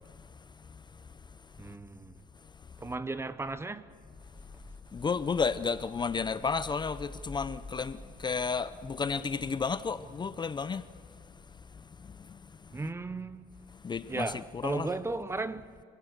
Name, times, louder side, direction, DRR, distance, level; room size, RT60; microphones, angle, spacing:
voice 1, 1.6-2.1 2.8-3.9 12.7-13.5 14.1-15.7, right 3 dB, 15° right, 0.9 m, -35 dB
sound 1, 4.0-10.0, left 2 dB, 10° left, 2.9 m, -49 dB
voice 2, 4.9-10.9 12.0-12.4 13.8-14.9, left 5 dB, 25° left, 0.6 m, -32 dB
26.5 x 16.5 x 8.1 m
cardioid pair, 110°, 17 cm